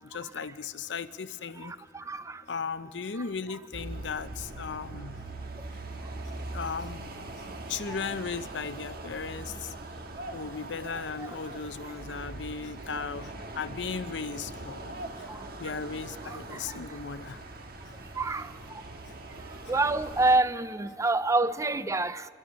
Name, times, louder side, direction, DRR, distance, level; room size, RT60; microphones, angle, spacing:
voice 1, 0.0-2.2 2.5-5.2 5.7-5.8 6.3-9.7 10.3-15.3 15.6-17.4 17.9-18.0 19.1-19.2 19.6-19.7, left 5 dB, 80° left, 0.7 m, -37 dB
voice 2, 1.6-2.4 7.9-8.0 11.2-11.3 16.3-16.6 18.2-18.5 19.7-22.3, right 2 dB, 15° right, 0.4 m, -27 dB
sound 1, 3.7-20.4, right 2 dB, 55° right, 1.5 m, -41 dB
24.5 x 22.0 x 6.2 m
head